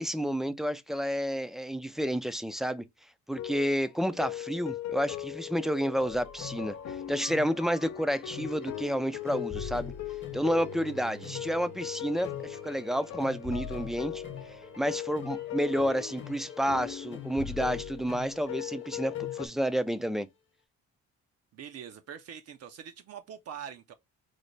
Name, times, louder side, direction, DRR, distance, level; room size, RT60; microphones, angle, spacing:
voice 1, 0.0-2.8 3.3-9.9 10.3-14.2 14.8-20.3, equal, ahead, 0.3 m, -30 dB
sound 1, 3.4-19.5, left 12 dB, 65° left, 0.5 m, -39 dB
sound 2, 6.1-20.1, left 7 dB, 40° left, 1.0 m, -45 dB
Bowed string instrument, 10.2-15.5, right 9 dB, 90° right, 1.7 m, -52 dB
voice 2, 21.5-23.9, right 8 dB, 55° right, 0.5 m, -44 dB
3.3 x 2.1 x 3.8 m
cardioid pair, 90°, 30 cm